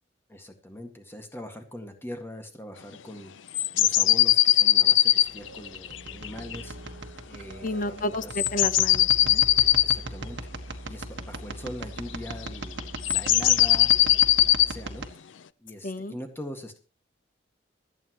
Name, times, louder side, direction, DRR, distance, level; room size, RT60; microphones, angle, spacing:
voice 1, 0.3-3.3 3.7-6.8 7.3-8.4 9.8-10.4 10.8-15.1 15.6-16.8, left 1 dB, 15° left, 5 dB, 1.9 m, -41 dB
sound 1, 3.5-6.6 8.3-10.0 12.3-12.5 12.9-14.7, left 13 dB, 85° left, 0.5 m, -20 dB
sound 2, 5.3-15.1, right 2 dB, 70° right, 1.6 m, -39 dB
voice 2, 7.6-9.4 15.8-16.2, left 1 dB, 50° left, 12 dB, 1.0 m, -31 dB
26.0 x 8.9 x 3.1 m, 0.33 s
head